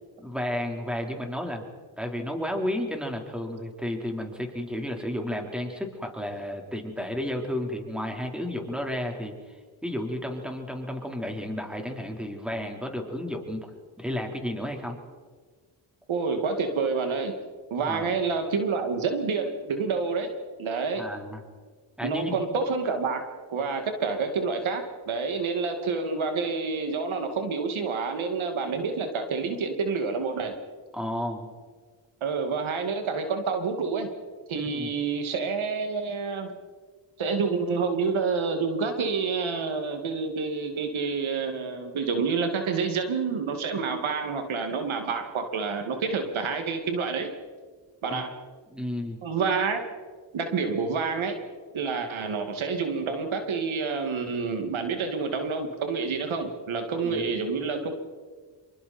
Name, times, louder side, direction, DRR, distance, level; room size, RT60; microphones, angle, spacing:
voice 1, 0.2-1.6 2.0-9.6 9.8-13.7 14.0-15.0 17.8-18.1 21.0-21.4 22.0-22.4 30.9-31.5 34.5-34.9 48.1-48.3 48.7-49.2 56.9-57.3, left 1 dB, ahead, 2 dB, 4.1 m, -32 dB
voice 2, 16.1-17.4 17.7-20.3 20.6-21.1 22.0-23.2 23.5-30.5 32.2-34.1 34.5-36.6 37.2-47.3 48.0-48.3 49.2-49.8 50.3-51.4 51.7-57.9, right 4 dB, 85° right, 6 dB, 2.4 m, -28 dB
27.0 x 24.0 x 4.4 m, 1.5 s
cardioid pair, 70°, 46 cm